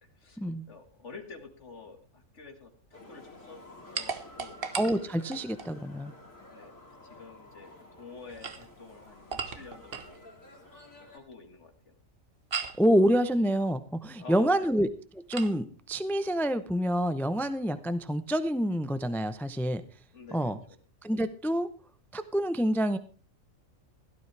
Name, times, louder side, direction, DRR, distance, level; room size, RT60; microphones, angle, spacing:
voice 1, 0.0-3.6 3.9-4.6 6.2-10.2 11.0-11.9 14.2-14.7 20.1-20.6, left 4 dB, 60° left, 6 dB, 2.4 m, -49 dB
sound 1, 2.9-11.2, left 2 dB, 80° left, 4.0 m, -52 dB
sound 2, 3.9-5.7 8.2-10.2 12.5-12.9 15.3-15.6, right 5 dB, 45° right, 1.3 m, -37 dB
voice 2, 4.7-6.1 12.8-14.9 15.1-19.8 20.3-20.6 21.0-21.7 22.1-23.0, equal, ahead, 11 dB, 0.6 m, -27 dB
16.5 x 12.5 x 3.4 m, 0.37 s
omnidirectional pair, 1.4 m